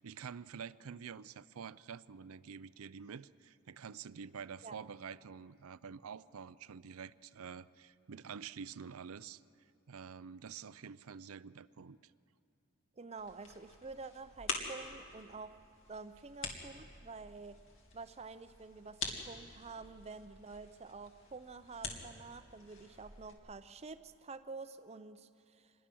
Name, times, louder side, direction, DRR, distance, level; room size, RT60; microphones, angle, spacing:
voice 1, 0.0-9.4 9.9-12.0, right 6 dB, 75° right, 17 dB, 0.5 m, -48 dB
voice 2, 13.0-15.6 15.9-17.6 17.9-25.7, right 4 dB, 30° right, 12 dB, 0.6 m, -49 dB
sound 1, 13.2-23.3, left 4 dB, 60° left, 2.4 m, -46 dB
26.5 x 21.0 x 6.2 m, 2.6 s
head